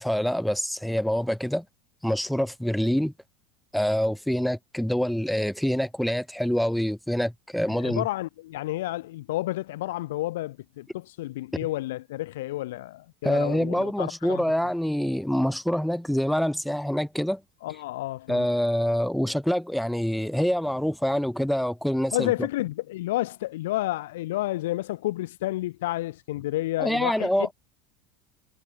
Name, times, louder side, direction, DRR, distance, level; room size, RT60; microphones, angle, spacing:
voice 1, 0.0-1.7 2.0-3.1 3.7-8.0 13.2-17.4 18.3-22.3 26.8-27.5, equal, ahead, 2.0 m, -26 dB
voice 2, 7.7-14.4 17.6-18.5 22.1-27.3, left 16 dB, 65° left, 5.5 m, -30 dB
figure-of-eight pair, 80°, 0 cm